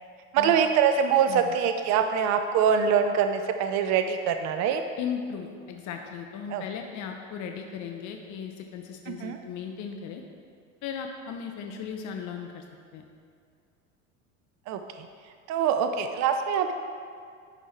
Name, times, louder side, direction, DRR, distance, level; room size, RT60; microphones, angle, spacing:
voice 1, 0.3-4.8 6.5-6.6 9.1-9.4 14.7-16.7, right 7 dB, 40° right, 7 dB, 0.6 m, -24 dB
voice 2, 5.0-10.2 10.8-12.6 12.9-13.0, left 7 dB, 45° left, 4 dB, 0.8 m, -36 dB
10.5 x 4.5 x 4.5 m, 2.2 s
hypercardioid pair, 85°, 43 cm